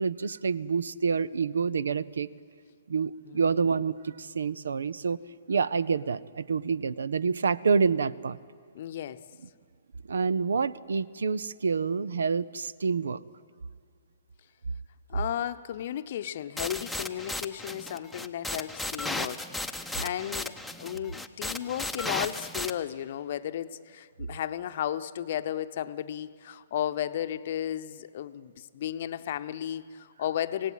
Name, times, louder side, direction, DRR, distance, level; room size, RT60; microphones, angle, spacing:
voice 1, 0.0-2.3 2.9-5.2 5.5-8.4 10.1-13.2, right 5 dB, 65° right, 21 dB, 0.6 m, -27 dB
voice 2, 8.7-9.2 15.1-30.7, left 11 dB, 50° left, 11 dB, 0.8 m, -34 dB
sound 1, 16.6-22.7, left 2 dB, ahead, 0.9 m, -35 dB
25.5 x 18.0 x 9.1 m, 2.1 s
figure-of-eight pair, 120°, 0 cm